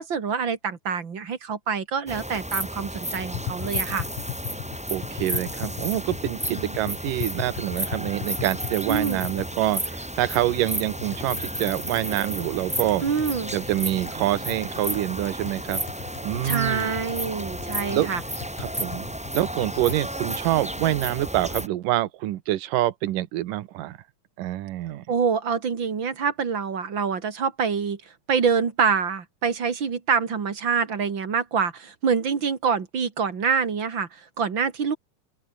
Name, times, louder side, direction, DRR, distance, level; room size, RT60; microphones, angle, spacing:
voice 1, 0.0-4.1 6.5-6.8 8.9-9.2 13.0-13.5 16.4-18.2 25.1-28.0 28.3-34.9, right 6 dB, 35° right, 2.6 m, -26 dB
sound 1, 2.1-21.7, equal, 5° right, 1.2 m, -32 dB
Tap, 3.2-20.0, left 13 dB, 70° left, 2.7 m, -39 dB
voice 2, 4.9-13.0 13.5-15.8 16.2-16.9 17.9-18.1 18.6-24.0 24.4-25.0, right 14 dB, 75° right, 2.6 m, -26 dB
open air
omnidirectional pair, 4.1 m